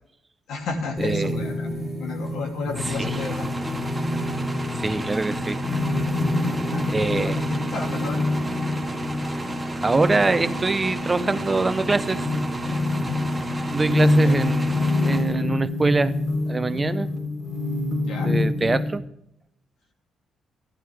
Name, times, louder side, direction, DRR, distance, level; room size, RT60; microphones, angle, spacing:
voice 1, 0.5-3.5 6.4-8.2 14.1-14.4 18.0-18.4, left 4 dB, 75° left, 2.8 m, -33 dB
sound 1, 1.0-19.0, left 2 dB, 35° left, 3.7 m, -27 dB
voice 2, 1.0-1.3 2.8-3.2 4.8-5.6 6.9-7.5 9.8-12.2 13.7-16.1 16.5-17.1 18.2-19.0, right 3 dB, 25° right, 0.6 m, -24 dB
sound 2, 2.7-15.7, right 1 dB, 10° right, 1.7 m, -32 dB
14.0 x 12.5 x 3.5 m
cardioid pair, 90°, 0 cm